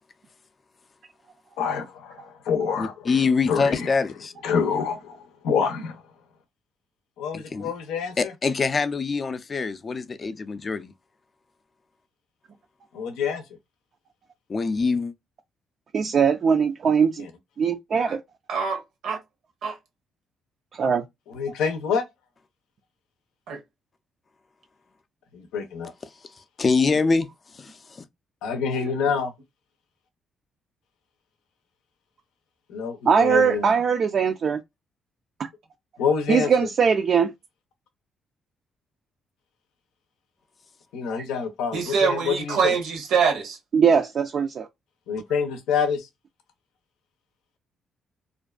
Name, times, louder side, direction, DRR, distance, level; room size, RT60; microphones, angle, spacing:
voice 1, 1.6-2.9 3.5-3.9 4.4-6.0 7.2-8.3 12.9-13.4 17.2-17.3 21.3-22.0 25.3-25.9 28.4-29.3 32.7-33.8 36.0-36.7 40.9-42.7 45.1-46.1, left 6 dB, 90° left, 0.5 m, -27 dB
voice 2, 2.8-4.3 7.3-7.7 8.2-10.9 14.5-15.1 26.6-27.3 27.5-28.0, left 4 dB, 35° left, 0.4 m, -24 dB
voice 3, 15.9-17.3 17.6-18.2 20.7-21.0 33.1-34.6 36.3-37.3 43.7-44.7, right 6 dB, 55° right, 0.3 m, -21 dB
voice 4, 18.5-19.2 19.6-19.8 23.5-23.6 28.7-28.9 41.7-43.6, right 6 dB, 80° right, 0.9 m, -25 dB
2.5 x 2.2 x 2.3 m
cardioid pair, 90°, 0 cm